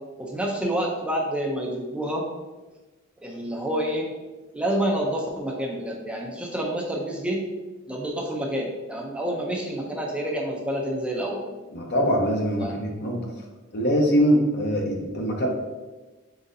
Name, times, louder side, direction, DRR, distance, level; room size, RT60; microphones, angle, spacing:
voice 1, 0.2-2.2 3.2-4.1 4.5-7.5 7.9-11.4 12.6-12.7, right 1 dB, 5° right, -1 dB, 0.4 m, -28 dB
voice 2, 11.7-13.3 13.7-15.5, equal, 55° left, 1 dB, 0.7 m, -23 dB
3.9 x 3.7 x 2.6 m, 1.2 s
head